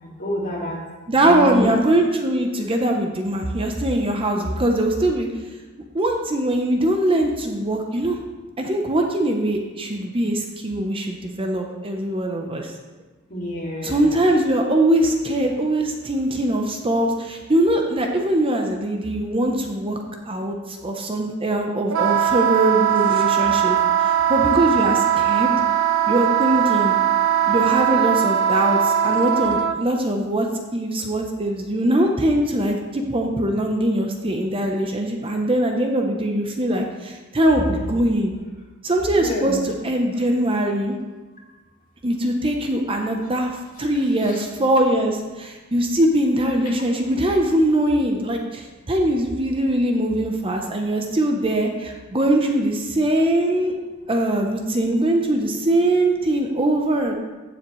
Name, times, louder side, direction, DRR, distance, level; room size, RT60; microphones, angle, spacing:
voice 1, 0.2-0.8 1.2-1.8 13.3-14.2 39.1-39.7 44.2-44.4 46.8-46.9, left 1 dB, 40° left, -3 dB, 2.3 m, -28 dB
voice 2, 1.1-5.3 5.9-8.2 8.6-12.7 13.8-20.0 20.3-25.5 26.1-27.0 27.4-30.5 30.7-38.3 38.8-41.0 42.0-53.7 54.1-57.1, right 1 dB, 25° right, 3 dB, 0.8 m, -22 dB
Wind instrument woodwind instrument, 21.9-29.8, right 10 dB, 75° right, 0.7 m, -20 dB
15.0 x 7.2 x 3.1 m, 1.2 s
head